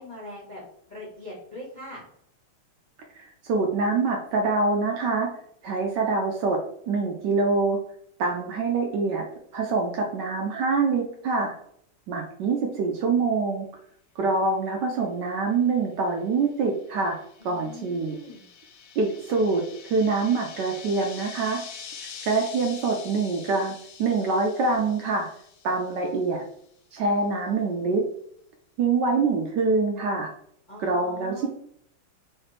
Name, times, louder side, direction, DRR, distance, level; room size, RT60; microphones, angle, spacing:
voice 1, 0.0-2.0 17.4-18.5 30.7-31.5, left 1 dB, 45° left, -6 dB, 0.6 m, -41 dB
voice 2, 3.1-5.3 5.6-6.6 6.9-7.8 8.2-9.2 9.5-11.5 12.1-13.7 14.2-17.2 17.4-18.1 19.0-21.6 22.2-25.3 25.6-26.4 26.9-28.1 28.8-30.3 30.8-31.5, right 4 dB, 75° right, 1 dB, 1.0 m, -25 dB
sound 1, 16.4-26.2, left 6 dB, 85° left, 0.8 m, -45 dB
3.2 x 3.0 x 3.2 m, 0.67 s
omnidirectional pair, 2.2 m